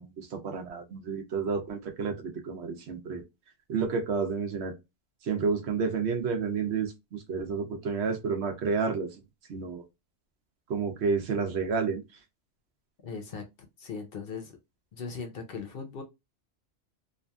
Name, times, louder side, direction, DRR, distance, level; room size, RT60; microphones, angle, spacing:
voice 1, 0.0-3.2 3.7-4.7 5.2-9.1 9.5-9.8 10.7-12.0, right 5 dB, 65° right, 0.9 m, -30 dB
voice 2, 13.0-13.4 13.8-14.6 14.9-16.0, left 5 dB, 60° left, 0.7 m, -38 dB
2.8 x 2.4 x 2.2 m
omnidirectional pair, 1.2 m